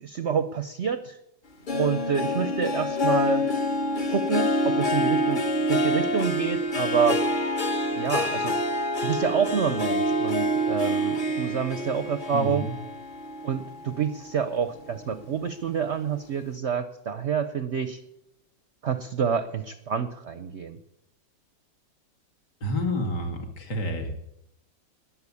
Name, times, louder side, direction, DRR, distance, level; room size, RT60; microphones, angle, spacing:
voice 1, 0.0-1.2 1.7-3.4 4.1-7.2 8.0-8.6 9.0-12.7 13.4-18.0 18.8-20.8, right 7 dB, 55° right, 11 dB, 0.8 m, -28 dB
Harp, 1.7-14.4 14.8-15.2 15.7-15.8, left 1 dB, 35° left, 0.9 m, -27 dB
voice 2, 12.3-12.7 22.6-24.2, left 1 dB, 60° left, 3 dB, 2.7 m, -29 dB
20.5 x 7.4 x 8.5 m, 0.84 s
omnidirectional pair, 2.0 m